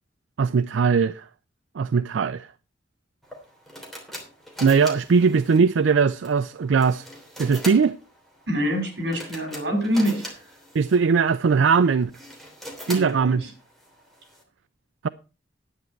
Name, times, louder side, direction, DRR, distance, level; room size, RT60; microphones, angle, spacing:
voice 1, 0.4-1.2 1.8-2.5 4.6-7.1 7.4-8.0 10.7-12.1 12.9-13.4, right 5 dB, 80° right, 0.4 m, -20 dB
sound 1, 3.2-14.4, equal, ahead, 3.1 m, -42 dB
voice 2, 8.5-10.4 12.9-13.5, equal, 60° right, 5.0 m, -26 dB
10.5 x 9.6 x 4.5 m
head